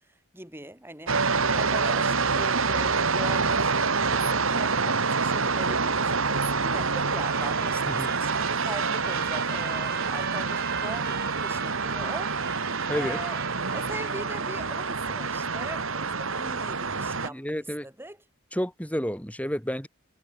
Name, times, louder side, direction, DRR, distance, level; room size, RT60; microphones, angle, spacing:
voice 1, 0.3-1.2 1.5-12.4 12.9-17.6 17.8-18.2, right 1 dB, 10° right, 7.2 m, -41 dB
sound 1, 1.1-17.3, right 4 dB, 65° right, 1.9 m, -27 dB
Trumpet, 7.1-15.0, right 6 dB, 45° right, 3.9 m, -37 dB
voice 2, 12.9-13.2 17.3-17.8 18.5-19.9, equal, 5° left, 7.8 m, -30 dB
head